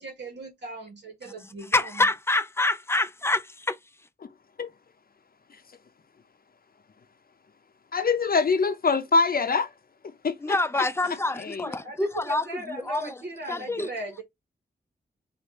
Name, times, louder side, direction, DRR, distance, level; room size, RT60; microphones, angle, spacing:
voice 1, 0.0-2.1 11.6-14.2, right 1 dB, 70° right, 1.7 m, -38 dB
voice 2, 1.7-3.8 10.4-13.2 13.5-13.9, left 2 dB, 15° left, 0.6 m, -26 dB
voice 3, 7.9-9.7 10.2-10.3 11.5-11.6, left 4 dB, 50° left, 0.7 m, -23 dB
4.9 x 2.6 x 3.1 m
wide cardioid pair, 80°, 19 cm